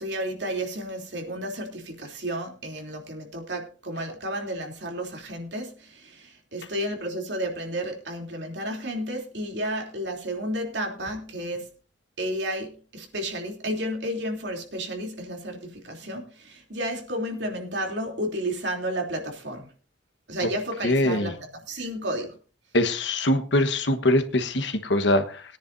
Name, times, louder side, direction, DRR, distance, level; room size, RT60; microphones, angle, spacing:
voice 1, 0.0-11.7 12.2-19.7 20.3-22.3, right 1 dB, 70° right, 2 dB, 3.2 m, -32 dB
voice 2, 20.8-21.3 22.7-25.4, left 1 dB, 70° left, 8 dB, 1.3 m, -23 dB
21.5 x 10.0 x 2.7 m, 0.38 s
head